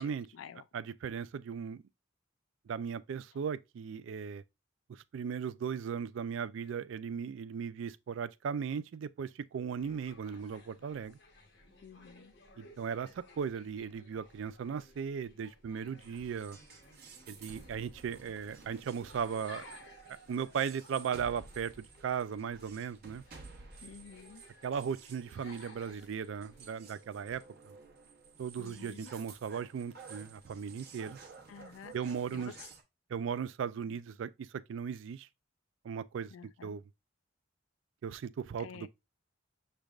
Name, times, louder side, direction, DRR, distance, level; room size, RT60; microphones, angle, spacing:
voice 1, 0.0-0.6 11.8-12.3 23.8-24.4 28.6-29.1 31.5-31.9 32.3-32.5 33.9-34.0 36.3-36.8 38.6-38.9, left 7 dB, 75° left, 0.4 m, -50 dB
voice 2, 0.7-1.8 2.7-4.4 4.9-11.2 12.6-16.6 17.3-19.6 20.3-23.2 24.6-27.7 28.4-31.2 31.9-32.5 33.1-35.3 35.8-36.3 36.6-36.8 38.0-38.9, right 7 dB, 65° right, 0.3 m, -37 dB
sound 1, 9.7-26.8, left 2 dB, 55° left, 0.9 m, -58 dB
sound 2, 16.0-32.8, right 4 dB, 50° right, 0.8 m, -53 dB
6.2 x 3.3 x 2.4 m
head